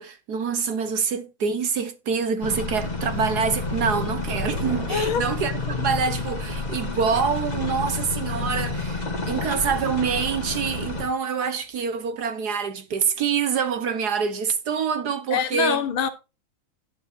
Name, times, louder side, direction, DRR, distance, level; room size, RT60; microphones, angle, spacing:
voice 1, 0.0-15.8, right 6 dB, 55° right, 1.5 m, -26 dB
sound 1, 2.4-11.0, left 3 dB, 20° left, 1.6 m, -29 dB
sound 2, 4.0-10.7 11.0-11.1 11.4-11.9, equal, 40° right, 3.4 m, -42 dB
voice 2, 4.9-5.2 15.3-16.1, left 8 dB, 80° left, 2.0 m, -24 dB
11.0 x 9.2 x 2.7 m
omnidirectional pair, 2.2 m